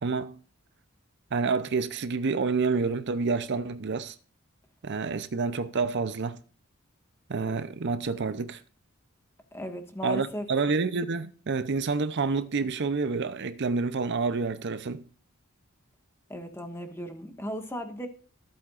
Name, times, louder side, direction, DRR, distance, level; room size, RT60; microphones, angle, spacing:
voice 1, 0.0-0.4 1.3-4.2 4.8-6.4 7.3-8.6 10.0-15.0, right 4 dB, 55° right, 0.6 m, -28 dB
voice 2, 9.5-10.5 16.3-18.1, equal, 10° left, 1.5 m, -36 dB
14.5 x 8.3 x 2.5 m
head